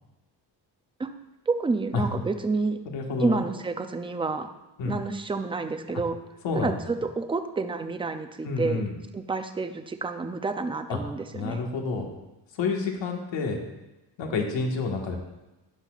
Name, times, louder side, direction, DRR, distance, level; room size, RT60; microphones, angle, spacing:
voice 1, 1.5-2.8 3.2-4.5 4.8-6.2 6.6-8.8 9.1-11.6, right 3 dB, 15° right, 7 dB, 0.4 m, -29 dB
voice 2, 2.9-3.5 4.8-5.0 6.4-6.8 8.4-9.0 10.9-11.0 11.3-12.1 12.5-13.6 14.2-15.2, left 4 dB, 90° left, 1 dB, 1.7 m, -29 dB
12.5 x 10.5 x 2.4 m, 1.0 s
cardioid pair, 175°, 43 cm